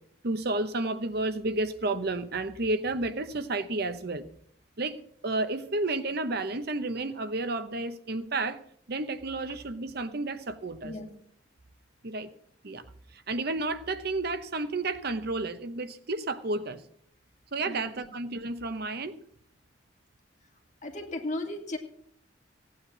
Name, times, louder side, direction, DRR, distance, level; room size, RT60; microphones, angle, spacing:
voice 1, 0.2-4.3 4.8-8.6 8.9-11.0 12.0-12.3 12.6-12.8 13.1-16.8 17.5-19.2, right 2 dB, 55° right, 0.9 m, -31 dB
voice 2, 20.8-21.8, left 1 dB, 40° left, 2.3 m, -35 dB
16.5 x 9.5 x 6.1 m
head